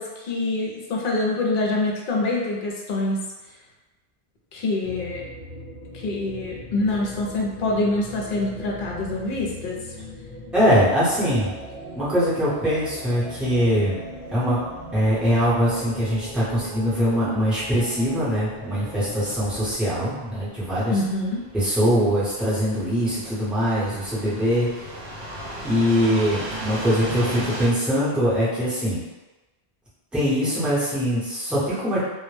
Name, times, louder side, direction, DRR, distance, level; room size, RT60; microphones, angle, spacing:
voice 1, 0.0-3.2 4.5-5.2 5.9-9.8 20.9-21.4, left 2 dB, 65° left, -2 dB, 0.7 m, -25 dB
sound 1, 4.8-19.8, equal, 40° right, 0.9 m, -39 dB
voice 2, 10.5-11.5 12.0-14.0 14.3-14.6 14.9-21.0 21.5-24.7 25.6-29.0 30.1-32.0, equal, ahead, -11 dB, 0.7 m, -22 dB
sound 2, 14.0-27.7, right 1 dB, 65° right, 0.7 m, -37 dB
2.1 x 2.1 x 3.1 m, 1.1 s
omnidirectional pair, 1.0 m